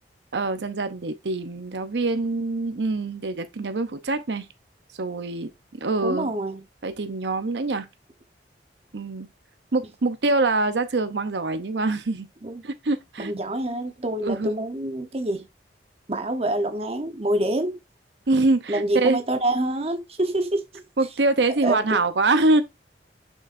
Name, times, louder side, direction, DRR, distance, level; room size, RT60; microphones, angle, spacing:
voice 1, 0.3-4.5 5.0-5.5 5.8-6.3 6.8-7.9 8.9-9.3 9.7-12.3 12.6-13.3 14.2-14.5 18.3-19.2 21.0-22.6, right 2 dB, 80° right, 0.8 m, -24 dB
voice 2, 6.0-6.6 12.4-12.6 13.2-15.4 16.1-17.8 18.7-20.8 21.6-21.8, right 1 dB, 35° right, 1.0 m, -26 dB
6.4 x 6.3 x 2.6 m
head